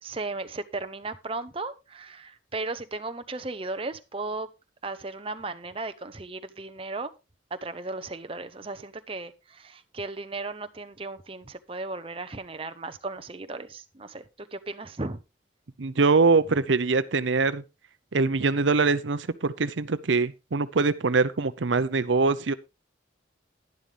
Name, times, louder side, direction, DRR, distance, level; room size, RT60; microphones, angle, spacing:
voice 1, 0.0-4.5 4.8-7.1 7.6-15.2, right 3 dB, 30° right, 0.7 m, -36 dB
voice 2, 15.8-17.6 18.1-22.5, right 4 dB, 75° right, 0.7 m, -23 dB
11.5 x 10.5 x 3.3 m
head